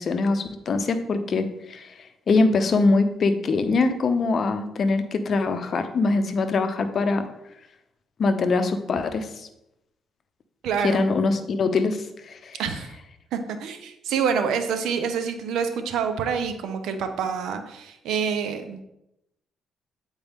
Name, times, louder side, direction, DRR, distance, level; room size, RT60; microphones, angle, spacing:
voice 1, 0.0-2.0 2.3-7.2 8.2-9.5 10.8-12.6, left 3 dB, 50° left, 9 dB, 0.7 m, -23 dB
voice 2, 10.6-11.1 12.6-12.9 13.3-18.8, right 6 dB, 80° right, 8 dB, 0.7 m, -27 dB
8.5 x 4.5 x 3.6 m, 0.85 s
cardioid pair, 90°, 0 cm